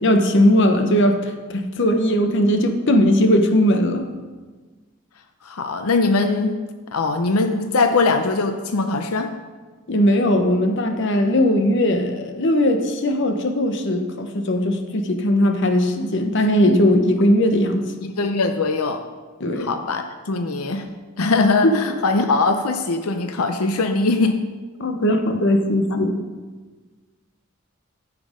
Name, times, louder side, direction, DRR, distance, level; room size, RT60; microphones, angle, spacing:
voice 1, 0.0-4.0 9.9-17.9 19.4-19.7 24.8-26.3, left 1 dB, 55° left, 6 dB, 1.0 m, -19 dB
voice 2, 5.4-6.6 6.9-9.3 18.0-19.0 19.5-20.9 21.2-24.4, left 3 dB, 90° left, 7 dB, 0.7 m, -21 dB
14.5 x 6.0 x 5.1 m, 1.4 s
head